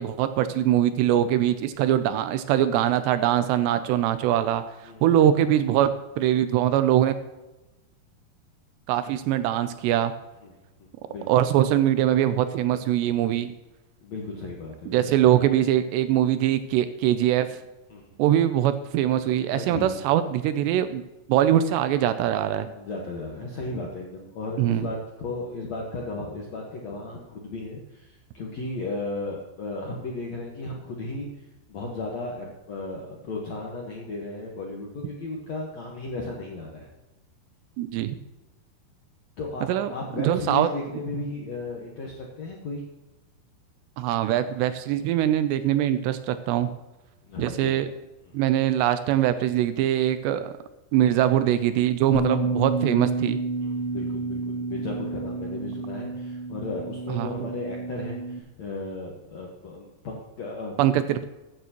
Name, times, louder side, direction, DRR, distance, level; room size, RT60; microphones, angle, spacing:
voice 1, 0.0-4.6 5.0-7.1 8.9-10.1 11.3-13.5 14.9-17.6 18.2-21.0 21.3-22.7 24.6-24.9 37.8-38.2 39.7-39.9 40.2-40.7 44.0-46.7 47.4-47.9 48.3-50.5 50.9-53.4 57.1-57.5 60.8-61.3, right 11 dB, 80° right, 11 dB, 2.6 m, -22 dB
voice 2, 10.8-11.4 14.0-15.3 17.9-18.2 19.5-20.0 22.7-36.9 39.4-42.8 47.2-47.7 48.4-48.5 53.6-60.7, left 2 dB, 65° left, -2 dB, 1.7 m, -35 dB
Bass guitar, 52.1-58.4, right 3 dB, 25° left, 0.6 m, -30 dB
15.0 x 9.5 x 3.0 m, 1.0 s
omnidirectional pair, 5.2 m